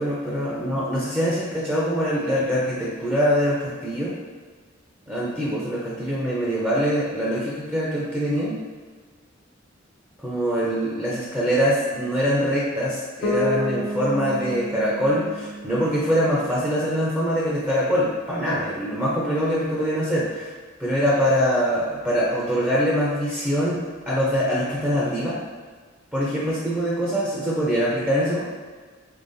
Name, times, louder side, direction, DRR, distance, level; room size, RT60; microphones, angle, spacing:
voice 1, 0.0-4.1 5.1-8.6 10.2-20.5 20.8-23.8 24.1-25.4 26.1-28.4, equal, 10° right, -7 dB, 0.5 m, -23 dB
Bass guitar, 13.2-17.1, left 1 dB, 60° left, 0.6 m, -31 dB
3.9 x 3.4 x 2.6 m, 1.5 s
head